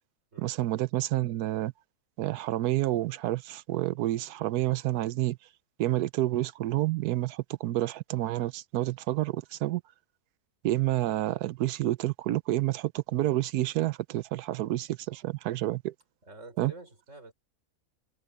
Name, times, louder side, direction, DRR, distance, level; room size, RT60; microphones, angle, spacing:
voice 1, 0.4-1.7 2.2-5.4 5.8-9.8 10.6-15.9 16.6-16.7, right 15 dB, 85° right, 1.1 m, -29 dB
voice 2, 16.2-17.3, right 3 dB, 50° right, 5.7 m, -47 dB
omnidirectional pair, 1.6 m